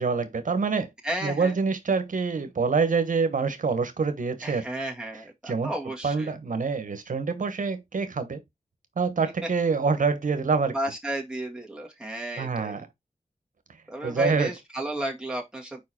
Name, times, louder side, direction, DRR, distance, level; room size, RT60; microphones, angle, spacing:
voice 1, 0.0-0.9 1.2-4.7 5.4-5.7 6.0-8.4 9.0-10.8 12.4-12.9 14.0-14.5, right 5 dB, 80° right, 1.2 m, -26 dB
voice 2, 1.0-1.5 4.4-6.3 10.7-12.9 13.9-15.8, right 1 dB, 5° right, 2.1 m, -33 dB
5.1 x 4.7 x 4.4 m
cardioid pair, 50°, 13 cm